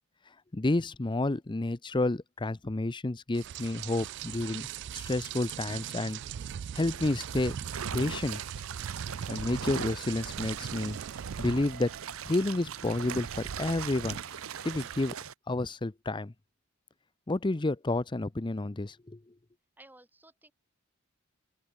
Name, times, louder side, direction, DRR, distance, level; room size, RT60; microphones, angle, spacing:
voice 1, 0.5-4.7 4.9-6.2 6.7-7.6 7.9-8.4 9.3-11.0 11.4-11.9 12.2-14.2 14.6-15.2 15.5-16.3 17.3-19.2, left 2 dB, 20° left, 0.6 m, -30 dB
Rain, 3.3-15.1, right 9 dB, 55° right, 0.3 m, -41 dB
sound 1, 6.9-15.3, right 7 dB, 75° right, 1.0 m, -41 dB
voice 2, 19.8-20.5, right 1 dB, 10° right, 3.5 m, -55 dB
open air
head